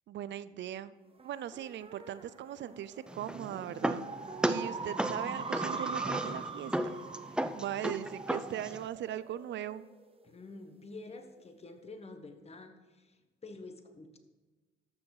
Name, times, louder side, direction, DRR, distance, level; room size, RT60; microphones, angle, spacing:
voice 1, 0.1-0.9 1.2-4.1 4.4-7.0 7.5-9.8, right 11 dB, 65° right, 16 dB, 0.5 m, -39 dB
sound 1, 1.2-10.0, right 4 dB, 30° right, 1.1 m, -42 dB
sound 2, 3.1-8.9, right 1 dB, 5° right, 0.5 m, -35 dB
voice 2, 4.7-5.1 10.2-14.2, left 3 dB, 30° left, 7 dB, 1.3 m, -49 dB
13.0 x 6.3 x 4.9 m, 1.3 s
cardioid pair, 90°, 20 cm